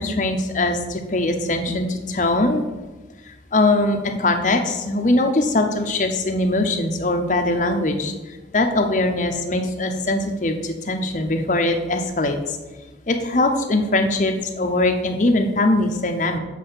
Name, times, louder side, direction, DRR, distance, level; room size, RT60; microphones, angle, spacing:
voice 1, 0.0-2.6 3.3-12.4 13.1-16.4, left 2 dB, 45° left, 4 dB, 0.7 m, -21 dB
7.6 x 3.3 x 5.6 m, 1.2 s
head